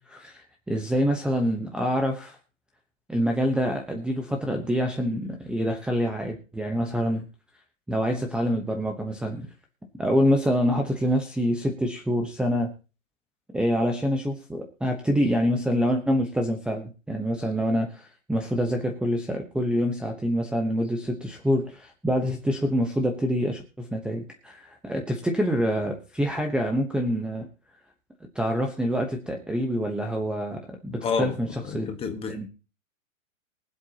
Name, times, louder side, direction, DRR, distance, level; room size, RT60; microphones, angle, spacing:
voice 1, 0.1-2.4 3.1-7.2 7.9-9.5 10.0-12.7 13.5-27.5 28.3-31.9 32.3-32.5, equal, ahead, 1.0 m, -26 dB
voice 2, 31.0-31.3 31.7-32.5, left 6 dB, 15° left, 1.4 m, -29 dB
23.5 x 8.1 x 2.9 m
hypercardioid pair, 150°, 41 cm